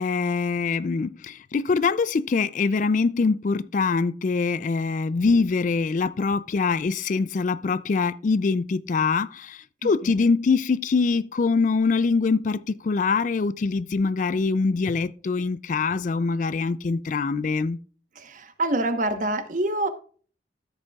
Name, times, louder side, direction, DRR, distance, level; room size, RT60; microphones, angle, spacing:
voice 1, 0.0-17.8, left 4 dB, 45° left, 0.3 m, -24 dB
voice 2, 9.8-10.1 18.1-19.9, right 2 dB, 45° right, 1.1 m, -26 dB
13.5 x 7.8 x 2.3 m
head